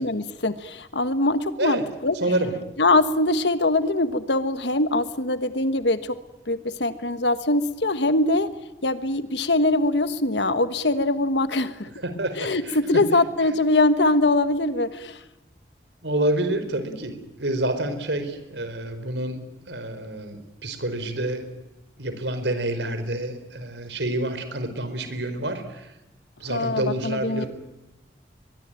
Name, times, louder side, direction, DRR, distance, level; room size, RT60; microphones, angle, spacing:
voice 1, 0.0-2.1 2.8-6.2 6.5-8.5 8.8-11.9 12.4-15.2 26.5-27.4, left 2 dB, 80° left, 11 dB, 1.4 m, -22 dB
voice 2, 2.1-2.5 12.0-13.0 16.0-19.4 19.7-21.4 22.0-25.9 26.4-27.5, right 1 dB, 85° right, 9 dB, 4.7 m, -28 dB
23.0 x 23.0 x 9.1 m, 1.0 s
head